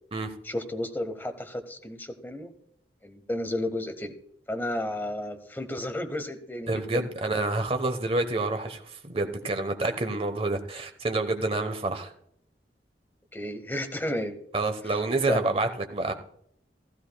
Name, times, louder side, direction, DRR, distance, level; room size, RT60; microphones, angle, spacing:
voice 1, 0.4-2.5 3.0-4.1 4.5-7.1 13.3-14.4 15.3-15.5, left 1 dB, 10° left, 7 dB, 1.0 m, -32 dB
voice 2, 6.7-12.1 14.5-16.1, right 2 dB, 30° right, 7 dB, 1.0 m, -28 dB
15.5 x 14.0 x 2.3 m, 0.68 s
head